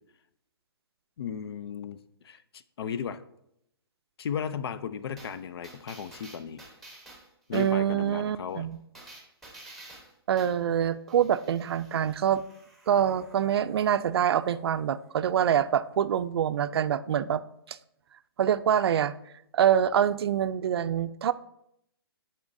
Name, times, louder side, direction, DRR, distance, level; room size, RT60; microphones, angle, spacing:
voice 1, 1.2-2.0 2.2-3.2 4.2-6.6 7.5-8.7, left 7 dB, 70° left, 14 dB, 0.5 m, -35 dB
sound 1, 5.2-7.8 8.9-10.6 11.1-16.3 16.6-16.7, right 2 dB, ahead, 1.0 m, -52 dB
voice 2, 7.5-8.8 10.3-12.4 12.9-17.4 17.7-17.8 18.4-19.1 19.5-21.3, right 9 dB, 75° right, 14 dB, 0.4 m, -25 dB
10.0 x 4.2 x 2.6 m, 0.77 s
hypercardioid pair, 160°, 13 cm